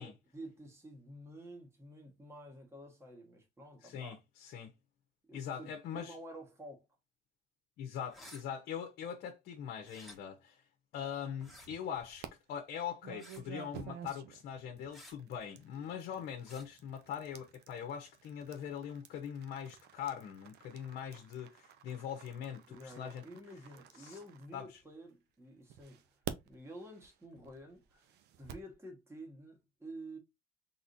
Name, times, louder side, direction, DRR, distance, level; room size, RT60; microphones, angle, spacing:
voice 1, 0.0-4.2 5.3-6.9 15.7-16.2 22.7-26.0 26.4-30.2, right 1 dB, 15° right, 1.6 m, -50 dB
voice 2, 3.8-4.7 5.3-6.2 7.8-10.6 10.9-23.2 24.0-24.2 24.5-24.8, left 8 dB, 75° left, 0.9 m, -42 dB
sound 1, 8.1-8.4 9.8-10.2 11.4-11.7 13.2-13.5 14.9-15.2 16.4-16.7, left 1 dB, ahead, 1.5 m, -53 dB
sound 2, 11.4-12.3 13.0-25.1 25.7-28.7, right 10 dB, 80° right, 0.7 m, -51 dB
4.1 x 3.6 x 2.6 m
cardioid pair, 110°, 17 cm